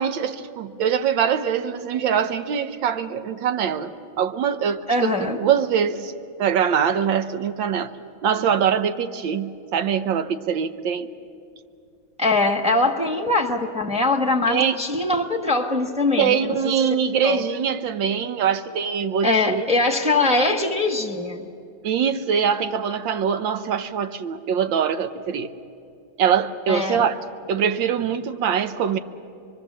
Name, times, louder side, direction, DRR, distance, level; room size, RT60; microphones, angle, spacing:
voice 1, 0.0-6.1 6.4-7.9 8.2-11.1 14.4-14.8 16.2-19.7 21.8-25.5 26.2-27.2 27.5-29.0, right 7 dB, 75° right, 1.5 m, -23 dB
voice 2, 4.9-5.4 12.2-16.5 17.2-17.4 19.2-21.5 26.7-27.0, left 2 dB, 5° right, 1.1 m, -22 dB
24.0 x 24.0 x 7.4 m
omnidirectional pair, 2.2 m